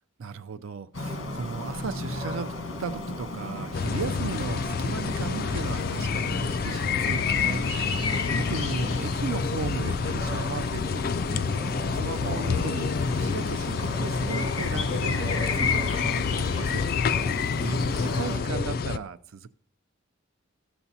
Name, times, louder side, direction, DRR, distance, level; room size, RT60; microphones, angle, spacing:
voice 1, 0.2-2.5 2.8-7.6 7.9-11.6 11.9-16.8 17.5-19.5, right 4 dB, 85° right, 12 dB, 0.5 m, -36 dB
sound 1, 0.9-18.4, left 2 dB, 65° left, 1.2 m, -34 dB
sound 2, 3.7-19.0, left 5 dB, 45° left, 0.3 m, -28 dB
13.0 x 7.0 x 2.7 m, 0.64 s
head